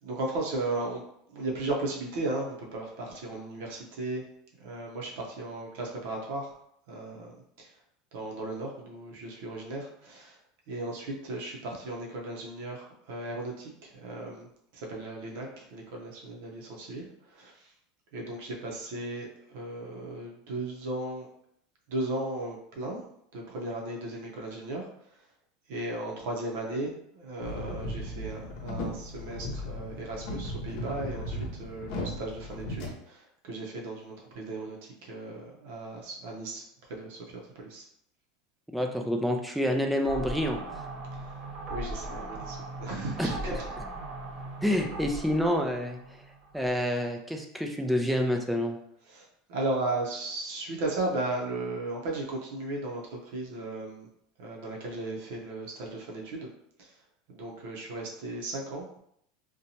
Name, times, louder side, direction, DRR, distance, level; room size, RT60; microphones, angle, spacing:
voice 1, 0.0-1.0 1.3-4.3 4.6-6.6 6.9-7.7 8.1-10.4 10.7-14.5 14.7-17.7 18.1-21.3 21.9-23.0 23.3-25.2 25.7-37.9 41.2-41.4 41.7-43.6 49.0-54.1 54.4-56.5 56.8-57.0 57.3-59.0, right 2 dB, 70° right, -1 dB, 0.6 m, -36 dB
sound 1, 27.4-32.9, left 1 dB, 60° left, 0.7 m, -36 dB
voice 2, 38.7-40.9 43.2-43.3 44.6-46.0 46.5-48.8, equal, ahead, 2 dB, 0.4 m, -28 dB
sound 2, 40.0-46.8, right 2 dB, 45° right, 0.9 m, -39 dB
2.7 x 2.2 x 2.7 m, 0.73 s
supercardioid pair, 125°, 0 cm